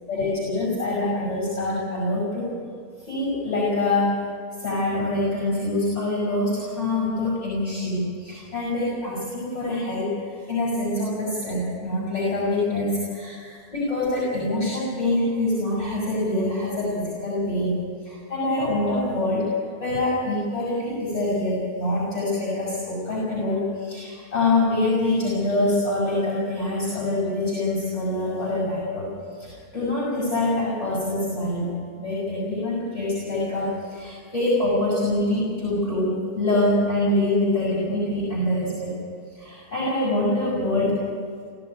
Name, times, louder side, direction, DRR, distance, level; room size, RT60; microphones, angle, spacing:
voice 1, 0.1-2.5 3.1-4.2 4.6-10.1 10.5-17.8 18.0-19.5 19.8-29.1 29.4-31.7 32.0-38.9 39.4-40.9, left 2 dB, 45° left, -6 dB, 6.9 m, -25 dB
18.5 x 14.5 x 9.5 m, 2.1 s
omnidirectional pair, 1.6 m